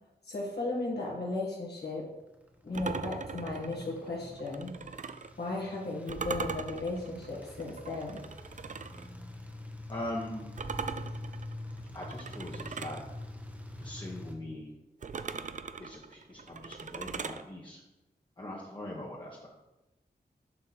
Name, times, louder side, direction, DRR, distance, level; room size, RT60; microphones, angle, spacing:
voice 1, 0.3-2.1 2.6-4.7 5.4-8.2, left 2 dB, 70° left, -4 dB, 1.8 m, -35 dB
sound 1, 2.4-14.3, left 1 dB, 10° right, 0.9 m, -46 dB
sound 2, 2.7-5.3 6.1-9.1 10.6-13.0 15.0-17.4, right 5 dB, 45° right, 0.4 m, -40 dB
voice 2, 9.9-10.4 11.9-13.0 13.8-14.7 15.8-17.8 18.4-19.5, left 1 dB, 25° left, -4 dB, 1.2 m, -41 dB
6.9 x 5.2 x 4.2 m, 1.0 s
wide cardioid pair, 60°, 18 cm